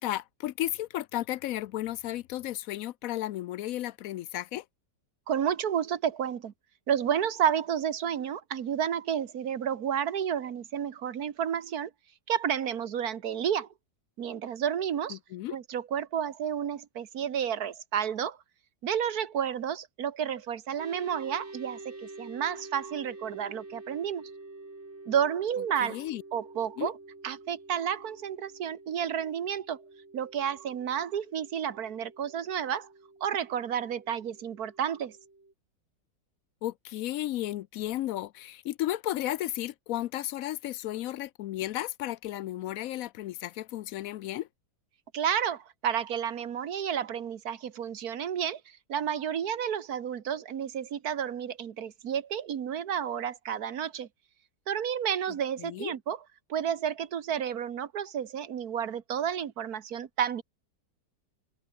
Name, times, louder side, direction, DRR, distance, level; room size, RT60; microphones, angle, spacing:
voice 1, 0.0-4.6 15.1-15.6 25.8-26.2 26.8-26.9 36.6-44.5 55.6-55.9, left 14 dB, 70° left, 0.8 m, -34 dB
voice 2, 5.3-6.5 6.9-11.9 12.3-13.7 14.2-15.2 15.5-18.4 18.8-24.3 25.1-26.0 26.3-27.0 27.2-29.8 30.1-32.9 33.2-35.2 45.1-48.6 48.9-54.1 54.7-56.2 56.5-60.4, right 8 dB, 60° right, 1.7 m, -31 dB
sound 1, 20.8-35.5, right 2 dB, 40° right, 4.1 m, -48 dB
omnidirectional pair, 1.8 m